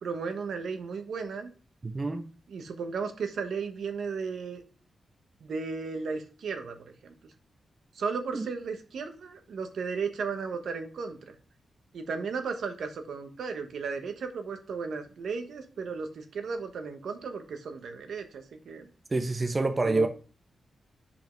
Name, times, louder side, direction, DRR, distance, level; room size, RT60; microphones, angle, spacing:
voice 1, 0.0-1.5 2.5-4.6 5.4-6.8 7.0-7.1 7.9-11.4 11.9-18.9 19.8-20.1, right 5 dB, 75° right, 1.1 m, -35 dB
voice 2, 1.8-2.3 8.3-8.5 19.1-20.1, right 3 dB, 20° right, 0.5 m, -27 dB
5.7 x 5.2 x 5.1 m
wide cardioid pair, 165°, 0 cm